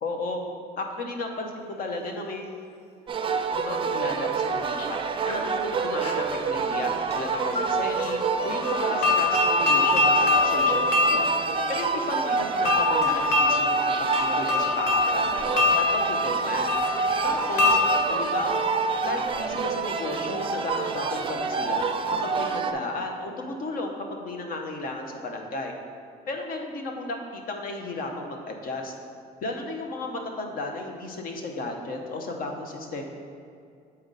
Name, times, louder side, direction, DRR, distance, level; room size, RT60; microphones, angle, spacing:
voice 1, 0.0-0.4 0.8-2.6 3.6-5.0 5.3-11.3 11.7-13.8 14.2-16.7 16.9-17.8 18.1-18.7 19.0-21.8 22.2-25.7 26.3-28.9 29.4-33.0, left 2 dB, 60° left, 3 dB, 0.9 m, -34 dB
sound 1, 1.6-3.7 4.1-4.2 4.9-6.4 6.9-11.2, left 2 dB, 35° left, 0.7 m, -41 dB
sound 2, 3.1-22.7, right 5 dB, 30° right, 0.4 m, -27 dB
sound 3, 8.6-19.4, left 3 dB, 80° left, 1.1 m, -25 dB
7.7 x 4.3 x 3.9 m, 2.3 s
cardioid pair, 110°, 17 cm